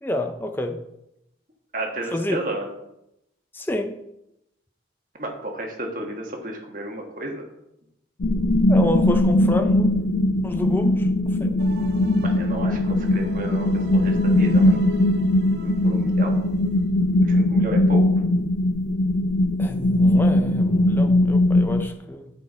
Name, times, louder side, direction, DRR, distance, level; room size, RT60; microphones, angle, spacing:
voice 1, 0.0-0.8 2.1-2.4 3.5-4.0 8.7-9.9 10.4-11.6 19.6-22.3, left 1 dB, 10° left, 6 dB, 0.5 m, -28 dB
voice 2, 1.7-2.7 5.2-7.4 12.2-14.8 15.6-16.4 17.2-18.2, right 1 dB, 45° right, 1 dB, 1.4 m, -32 dB
sound 1, 8.2-21.9, left 1 dB, 85° left, 0.5 m, -20 dB
sound 2, 11.6-17.0, right 4 dB, 60° right, 0.5 m, -42 dB
10.0 x 4.5 x 4.2 m, 0.83 s
head